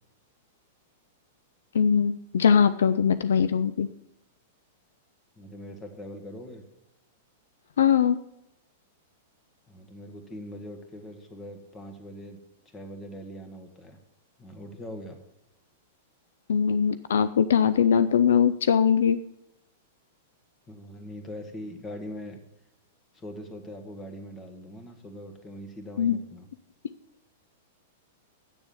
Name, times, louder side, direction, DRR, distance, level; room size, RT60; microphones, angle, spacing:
voice 1, 1.7-3.9 7.8-8.2 16.5-19.2 26.0-26.2, left 7 dB, 75° left, 13 dB, 0.4 m, -21 dB
voice 2, 5.3-6.6 9.7-12.4 12.6-14.0 14.4-15.2 20.7-22.4 23.1-26.5, equal, 20° left, 5 dB, 1.8 m, -41 dB
8.1 x 6.9 x 7.1 m, 0.84 s
hypercardioid pair, 105°, 0 cm